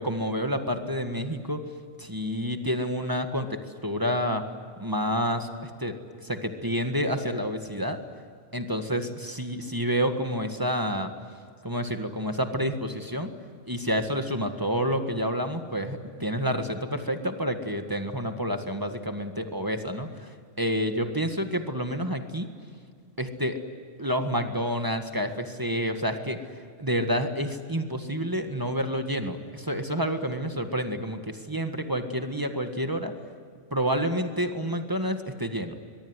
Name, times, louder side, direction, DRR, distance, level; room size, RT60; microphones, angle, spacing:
voice 1, 0.0-1.6 2.0-4.4 4.8-5.9 6.2-8.0 8.5-11.1 11.6-13.3 13.6-22.5 23.2-23.6 24.0-26.4 26.8-33.1 33.7-35.7, equal, 15° right, 6 dB, 1.7 m, -29 dB
23.0 x 22.5 x 9.8 m, 2.1 s
omnidirectional pair, 1.3 m